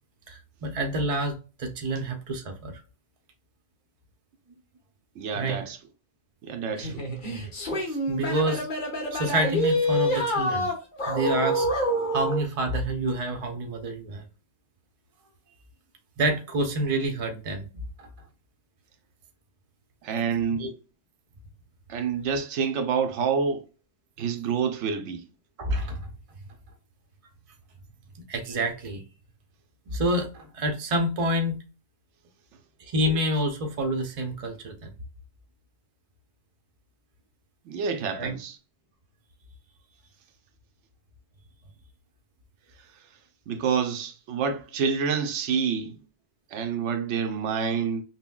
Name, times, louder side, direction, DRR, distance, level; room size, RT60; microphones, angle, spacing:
voice 1, 0.3-2.7 5.3-5.6 7.7-8.7 9.1-10.7 11.1-14.2 16.2-17.7 18.0-18.1 20.6-20.7 25.6-26.1 28.3-29.0 29.9-31.6 32.9-34.9 38.2-38.3, right 1 dB, 35° right, 0.6 m, -28 dB
voice 2, 5.2-5.8 6.4-7.1 20.0-20.6 21.9-23.6 24.2-25.2 37.6-38.6 43.5-46.0 46.5-48.0, right 6 dB, 80° right, 0.9 m, -28 dB
sound 1, 6.8-12.5, equal, 45° left, 1.1 m, -27 dB
5.5 x 2.1 x 2.3 m
omnidirectional pair, 1.2 m